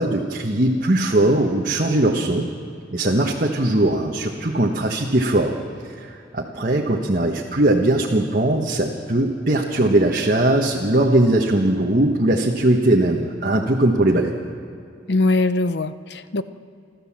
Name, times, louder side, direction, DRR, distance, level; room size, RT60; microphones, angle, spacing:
voice 1, 0.0-2.5 2.9-5.5 5.8-14.4, right 1 dB, 45° right, -1 dB, 1.3 m, -20 dB
voice 2, 15.1-16.4, left 2 dB, 60° left, 13 dB, 0.7 m, -21 dB
29.5 x 12.0 x 7.4 m, 2.5 s
head